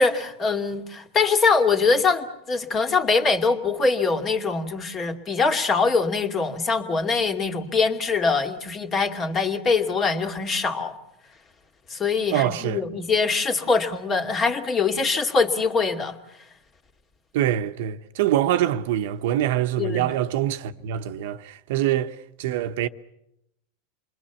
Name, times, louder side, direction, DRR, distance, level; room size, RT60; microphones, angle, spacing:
voice 1, 0.0-11.0 11.9-16.2 19.8-20.1, left 4 dB, 30° left, 2.5 m, -23 dB
voice 2, 12.3-12.8 17.3-22.9, right 12 dB, 70° right, 1.0 m, -24 dB
28.0 x 21.0 x 7.2 m
hypercardioid pair, 110°, 0 cm